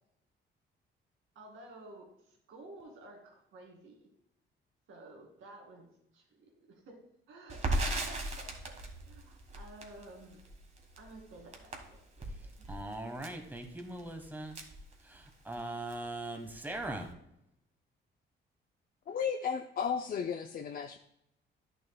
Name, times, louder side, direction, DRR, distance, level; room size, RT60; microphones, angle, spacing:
voice 1, 1.4-4.1 4.9-5.9 6.1-7.0 7.3-8.5 9.1-10.5 11.0-12.0 12.4-12.7, right 1 dB, 85° right, 1 dB, 2.2 m, -52 dB
Crackle, 7.5-15.6 15.9-16.0 16.3-17.1, right 1 dB, 35° right, 1.5 m, -38 dB
voice 2, 12.7-14.6 15.0-17.1, right 2 dB, 10° right, 5 dB, 1.2 m, -40 dB
voice 3, 19.1-21.0, left 7 dB, 50° left, 6 dB, 0.5 m, -34 dB
10.5 x 6.5 x 2.2 m, 0.80 s
cardioid pair, 90°, 20 cm